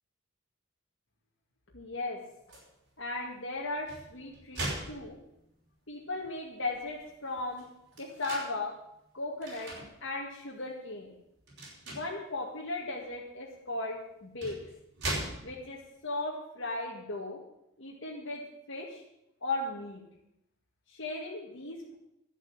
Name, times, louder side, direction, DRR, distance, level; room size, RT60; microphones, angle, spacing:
voice 1, 1.7-2.2 3.0-5.2 5.9-7.6 8.0-8.7 9.1-9.7 10.0-11.2 11.9-14.6 15.4-17.4 17.8-19.0 19.4-20.0 20.9-21.9, left 2 dB, 65° left, -3 dB, 2.1 m, -37 dB
sound 1, 2.5-2.7 3.7-5.6 6.2-6.3 6.6-8.5 9.4-9.9 10.4-10.6 11.5-12.2 13.5-13.6 14.2-15.8, right 1 dB, 55° right, 5.4 m, -39 dB
11.5 x 8.1 x 8.9 m, 0.81 s
head